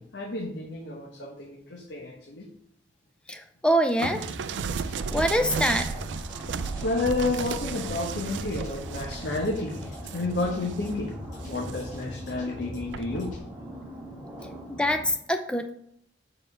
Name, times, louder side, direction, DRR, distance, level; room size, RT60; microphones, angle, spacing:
voice 1, 0.0-2.5 6.8-11.1 11.5-13.3, left 2 dB, 70° left, -1 dB, 1.2 m, -31 dB
voice 2, 3.3-4.3 5.1-5.9 14.8-15.7, equal, 5° left, 6 dB, 0.5 m, -24 dB
sound 1, 4.0-11.0 11.4-12.1 12.9-13.2, right 6 dB, 90° right, 0.4 m, -34 dB
sound 2, 4.1-13.4, left 1 dB, 45° left, 1.9 m, -42 dB
sound 3, 4.9-15.1, equal, 10° right, 1.9 m, -43 dB
6.9 x 4.4 x 5.5 m, 0.70 s
head